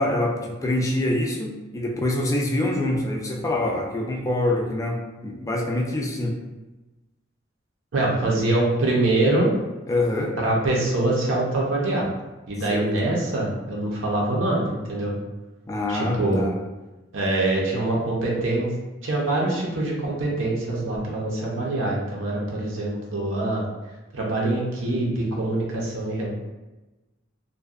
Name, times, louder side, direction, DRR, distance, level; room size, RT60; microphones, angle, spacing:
voice 1, 0.0-6.4 9.9-10.3 12.7-12.9 15.7-16.5, left 1 dB, 15° left, 0 dB, 0.3 m, -25 dB
voice 2, 7.9-9.5 10.4-12.1 12.5-15.1 15.9-16.4 17.1-18.7 19.0-23.6 24.1-26.3, right 2 dB, 75° right, -3 dB, 0.6 m, -24 dB
2.6 x 2.2 x 2.4 m, 1.1 s
head